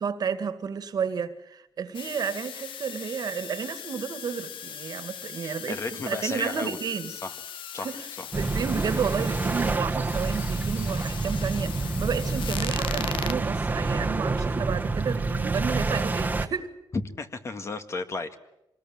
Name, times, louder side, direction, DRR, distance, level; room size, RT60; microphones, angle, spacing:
voice 1, 0.0-7.1 7.8-8.1 8.3-16.7, right 6 dB, 50° right, 2.0 m, -31 dB
sound 1, 1.9-13.3, left 9 dB, 80° left, 1.0 m, -39 dB
voice 2, 5.4-6.8 7.1-7.3 7.7-8.3 16.9-18.4, left 3 dB, 35° left, 1.8 m, -34 dB
sound 2, 8.3-16.5, right 3 dB, 20° right, 1.4 m, -28 dB
25.5 x 20.0 x 9.0 m
wide cardioid pair, 145°, 8 cm